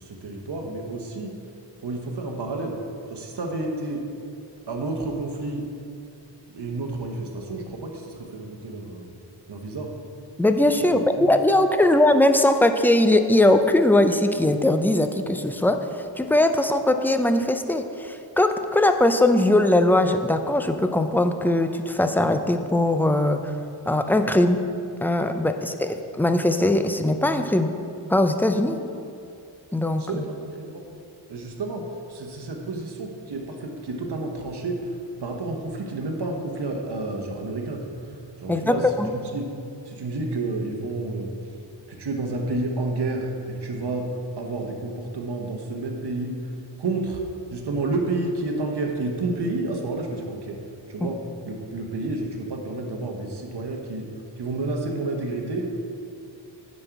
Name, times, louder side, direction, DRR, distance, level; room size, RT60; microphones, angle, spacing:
voice 1, 0.0-1.4 1.8-2.8 3.1-4.0 4.7-5.7 6.5-9.1 9.5-9.9 10.9-11.3 30.0-30.3 30.6-30.8 31.3-38.1 38.4-39.5 39.9-41.3 41.9-44.1 44.4-46.5 46.8-47.2 47.5-50.6 50.9-54.1 54.4-55.7, right 2 dB, 65° right, 1 dB, 1.1 m, -30 dB
voice 2, 10.4-15.8 16.2-23.4 23.9-24.6 25.0-27.7 28.1-28.8 29.7-30.2 38.5-39.1 51.0-51.1, left 1 dB, 5° left, 7 dB, 0.4 m, -20 dB
9.7 x 5.3 x 4.6 m, 2.6 s
wide cardioid pair, 85°, 44 cm